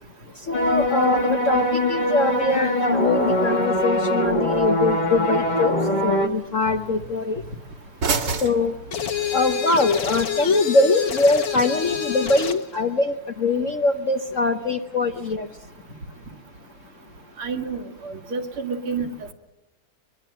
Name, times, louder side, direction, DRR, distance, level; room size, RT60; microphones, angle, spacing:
voice 1, 0.5-5.7 6.0-7.4 8.4-8.8 9.3-15.5, left 3 dB, 50° left, 6 dB, 1.0 m, -22 dB
sound 1, 0.5-6.3, equal, 25° left, 1.4 m, -22 dB
sound 2, 1.6-9.6, right 4 dB, 60° right, 2.3 m, -35 dB
sound 3, 8.9-12.7, left 8 dB, 65° left, 2.3 m, -28 dB
voice 2, 17.4-19.1, right 5 dB, 75° right, 4 dB, 2.9 m, -29 dB
23.5 x 22.5 x 7.8 m, 0.97 s
omnidirectional pair, 2.3 m